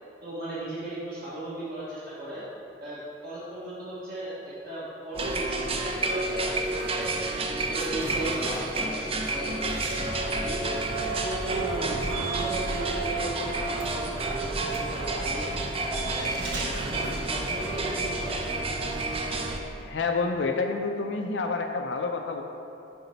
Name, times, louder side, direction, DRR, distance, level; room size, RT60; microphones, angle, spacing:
voice 1, 0.2-2.4 2.8-7.1 7.5-10.6 10.9-15.5 15.8-17.0 17.3-18.4, right 1 dB, 55° right, -11 dB, 1.3 m, -36 dB
sound 1, 5.1-19.6, right 2 dB, 30° right, 0.5 m, -30 dB
sound 2, 6.7-13.1 13.4-18.0 18.3-18.5, right 3 dB, 80° right, 1.0 m, -45 dB
voice 2, 19.8-22.4, left 4 dB, 75° left, 3 dB, 0.5 m, -28 dB
8.1 x 4.3 x 4.0 m, 2.9 s
head